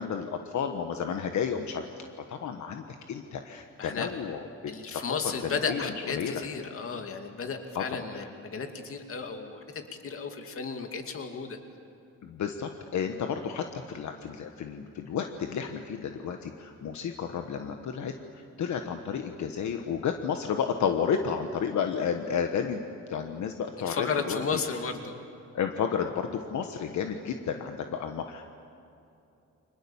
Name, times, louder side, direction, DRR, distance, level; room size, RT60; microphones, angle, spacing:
voice 1, 0.0-4.5 4.9-6.4 7.7-7.8 8.1-8.3 12.2-24.4 25.5-28.4, left 7 dB, 70° left, 5 dB, 1.4 m, -32 dB
voice 2, 3.8-4.1 4.7-9.6 10.0-11.6 23.8-25.1, left 5 dB, 50° left, 5 dB, 2.5 m, -33 dB
30.0 x 25.0 x 7.2 m, 2.7 s
wide cardioid pair, 165°, 29 cm